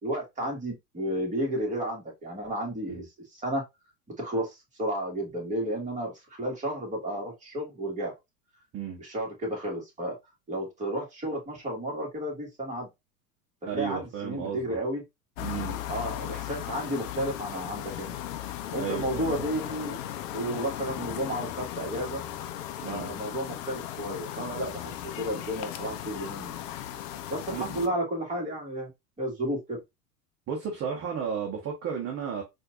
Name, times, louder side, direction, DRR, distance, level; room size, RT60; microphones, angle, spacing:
voice 1, 0.0-3.0 3.3-3.6 4.2-6.1 6.4-8.1 9.0-10.2 10.5-12.9 13.7-15.0 15.9-18.1 18.7-20.0 20.3-22.2 22.9-24.9 25.2-26.6 27.3-28.9 29.2-29.8, right 1 dB, 15° right, 1.9 m, -32 dB
voice 2, 13.6-14.8 15.4-15.8 18.8-19.5 22.8-23.2 27.5-27.8 30.5-32.4, right 7 dB, 30° right, 1.0 m, -34 dB
sound 1, 15.4-27.9, left 12 dB, 55° left, 0.6 m, -37 dB
4.2 x 2.7 x 2.5 m
hypercardioid pair, 95°, 46 cm